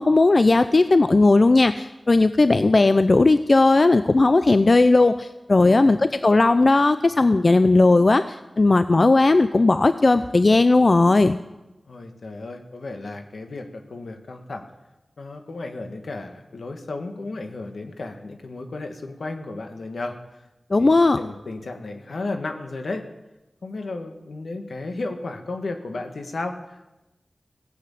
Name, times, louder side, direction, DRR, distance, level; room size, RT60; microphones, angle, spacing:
voice 1, 0.0-11.4 20.7-21.2, left 2 dB, 55° left, 11 dB, 0.5 m, -17 dB
voice 2, 5.6-6.0 11.8-14.6 15.2-20.5 20.8-23.0 23.6-26.9, left 2 dB, 85° left, 5 dB, 1.5 m, -34 dB
16.5 x 8.0 x 8.6 m, 1.0 s
wide cardioid pair, 50°, 0 cm